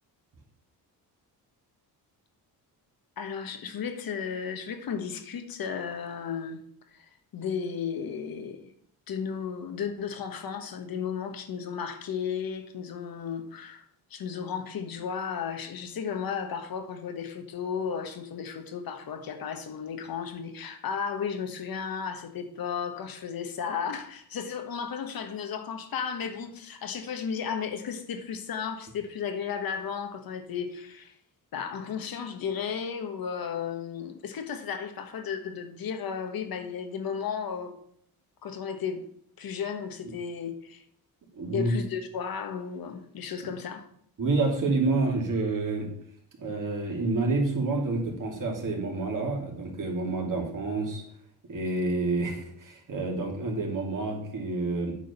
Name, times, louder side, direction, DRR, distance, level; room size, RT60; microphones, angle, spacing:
voice 1, 3.2-8.7 9.1-31.1 31.5-37.7 38.4-39.1 39.4-40.8 41.5-43.9, left 7 dB, 65° left, 1.4 m, -34 dB
voice 2, 41.3-41.7 44.2-45.9 46.4-51.0 51.5-54.9, right 3 dB, 55° right, 3.0 m, -28 dB
8.7 x 4.9 x 7.0 m
cardioid pair, 95°, 38 cm